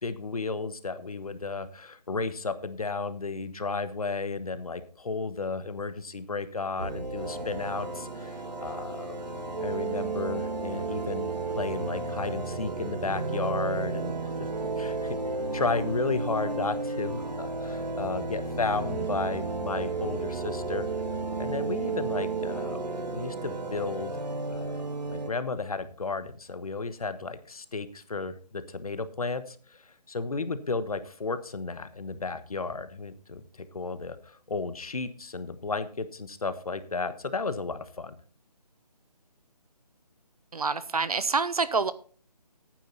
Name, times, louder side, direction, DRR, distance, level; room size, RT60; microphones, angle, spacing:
voice 1, 0.0-9.1 9.6-11.3 11.6-14.3 14.8-15.2 15.5-20.9 21.4-22.8 23.1-24.1 24.5-38.2, left 4 dB, 60° left, 12 dB, 1.2 m, -33 dB
sound 1, 6.8-25.3, right 3 dB, 90° right, 2.1 m, -33 dB
voice 2, 40.5-41.9, right 4 dB, 65° right, 15 dB, 0.9 m, -27 dB
11.5 x 9.2 x 4.0 m, 0.41 s
hypercardioid pair, 175°, 21 cm